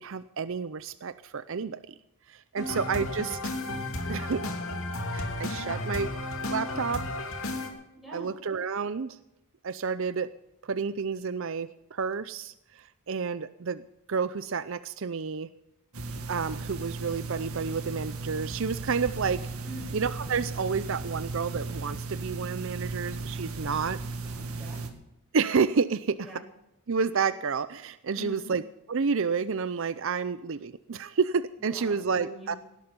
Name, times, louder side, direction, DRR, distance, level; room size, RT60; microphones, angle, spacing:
voice 1, 0.0-1.9 2.3-3.4 4.1-4.4 5.1-6.1 6.5-7.0 8.1-9.2 9.6-10.3 10.6-13.8 14.1-15.5 16.3-19.5 19.9-24.0 25.3-26.3 26.9-28.6 28.9-32.6, right 5 dB, 60° right, 14 dB, 0.6 m, -30 dB
sound 1, 2.6-7.7, left 2 dB, 65° left, 2.7 m, -33 dB
voice 2, 7.9-8.3 19.6-20.0 23.6-23.8 24.2-24.8 26.2-26.4 28.1-28.5 31.7-32.6, equal, ahead, -3 dB, 7.7 m, -44 dB
sound 2, 15.9-24.9, right 3 dB, 80° right, 2.1 m, -36 dB
18.0 x 11.5 x 5.3 m, 0.89 s
head